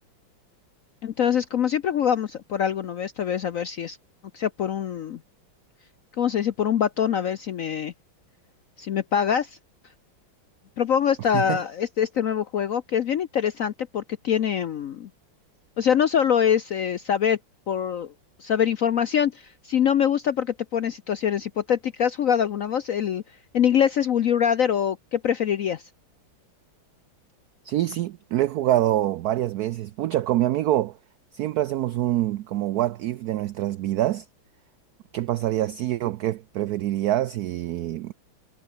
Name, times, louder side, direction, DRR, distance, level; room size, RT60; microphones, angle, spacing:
voice 1, 1.0-4.0 4.3-5.2 6.2-7.9 8.8-9.6 10.8-15.1 15.8-17.4 17.7-18.1 18.4-23.2 23.5-25.9, left 8 dB, 65° left, 0.8 m, -24 dB
voice 2, 27.6-31.0 31.3-34.3 35.1-38.1, right 14 dB, 85° right, 0.8 m, -25 dB
omnidirectional pair, 2.2 m